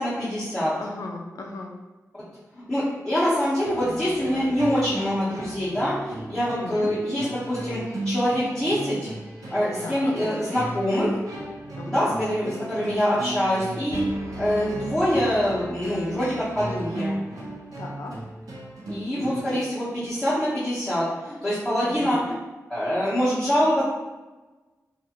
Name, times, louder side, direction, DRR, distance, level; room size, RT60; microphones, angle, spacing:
voice 1, 0.0-0.7 2.5-7.8 8.0-9.1 9.5-11.2 11.9-17.2 18.9-22.3 22.7-23.8, equal, 10° left, -13 dB, 0.9 m, -25 dB
voice 2, 0.8-1.8 6.6-6.9 9.8-10.1 11.7-12.1 17.8-18.1 19.2-19.6 21.8-22.2, left 3 dB, 75° left, 1 dB, 0.4 m, -36 dB
sound 1, 3.6-19.4, right 1 dB, 90° right, 0.7 m, -35 dB
2.5 x 2.4 x 2.8 m, 1.2 s
wide cardioid pair, 85°, 6 cm